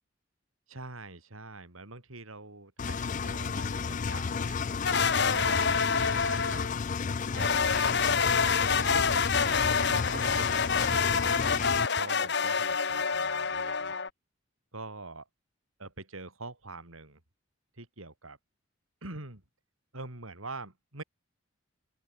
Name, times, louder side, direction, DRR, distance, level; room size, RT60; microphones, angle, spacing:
voice 1, 0.7-4.6 5.2-6.8 7.3-11.4 12.0-13.9 14.7-15.3 15.8-17.2 17.8-18.4 19.0-19.4 19.9-21.0, right 3 dB, 85° right, 4.2 m, -45 dB
Engine, 2.8-11.9, left 5 dB, 35° left, 0.4 m, -32 dB
sound 1, 4.8-6.7 7.3-14.1, left 5 dB, 55° left, 1.2 m, -27 dB
open air
head